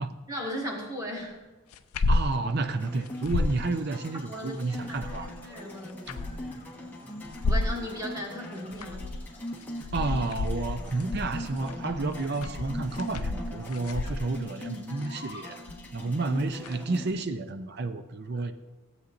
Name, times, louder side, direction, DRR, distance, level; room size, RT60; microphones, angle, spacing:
voice 1, 0.3-1.4 4.3-6.0 7.4-9.0 16.0-16.1, equal, 15° right, -1 dB, 1.5 m, -37 dB
sound 1, 1.7-2.3 2.6-2.7 3.1-3.6 4.8-5.4 5.9-6.5 7.2-7.8 8.6-9.2 9.6-14.4 15.7-16.0 16.6-16.7, left 2 dB, 80° left, 0.4 m, -30 dB
voice 2, 2.1-5.3 9.9-15.6 15.9-18.5, right 3 dB, 50° right, 10 dB, 0.5 m, -31 dB
sound 2, 2.6-17.1, left 1 dB, 10° left, 1.3 m, -41 dB
sound 3, 3.8-5.5 5.9-6.7 7.1-7.2 7.6-14.2 14.5-15.6, left 3 dB, 45° left, 2.5 m, -52 dB
15.5 x 8.0 x 2.6 m, 1.2 s
head